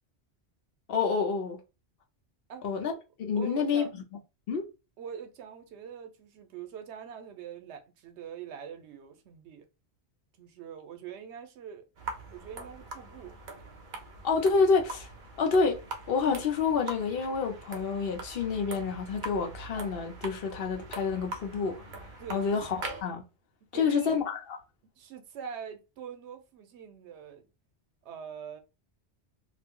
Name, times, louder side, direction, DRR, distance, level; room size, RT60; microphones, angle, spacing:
voice 1, 0.9-1.6 2.6-2.9 3.2-3.8 4.5-4.7 14.2-15.1 15.4-21.9 22.3-23.2 23.7-24.4, left 5 dB, 60° left, 0.8 m, -28 dB
voice 2, 3.3-3.9 5.0-9.7 10.4-11.8 12.3-13.4 22.2-22.4 23.7-24.1 25.0-27.5 28.0-28.6, right 8 dB, 85° right, 0.9 m, -43 dB
sound 1, 12.0-23.0, right 3 dB, 55° right, 0.7 m, -43 dB
2.4 x 2.0 x 3.5 m
omnidirectional pair, 1.2 m